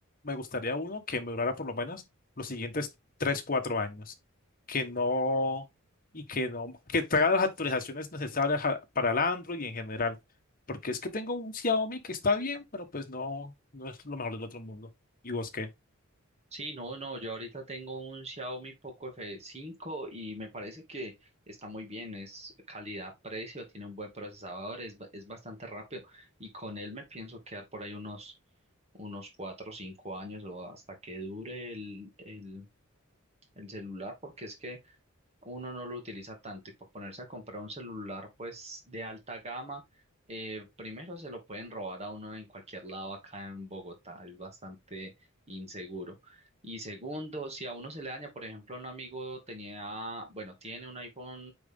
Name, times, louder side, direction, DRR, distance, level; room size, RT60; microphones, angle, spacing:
voice 1, 0.2-2.0 2.4-2.9 3.2-4.1 4.7-5.7 6.1-10.2 10.7-14.9 15.2-15.7, left 3 dB, 40° left, 1.4 m, -31 dB
voice 2, 16.5-28.3 28.9-32.7 33.6-34.8 35.4-36.6 36.9-39.8 40.3-45.1 45.5-51.5, right 1 dB, 30° right, 2.2 m, -41 dB
9.2 x 4.1 x 3.7 m
head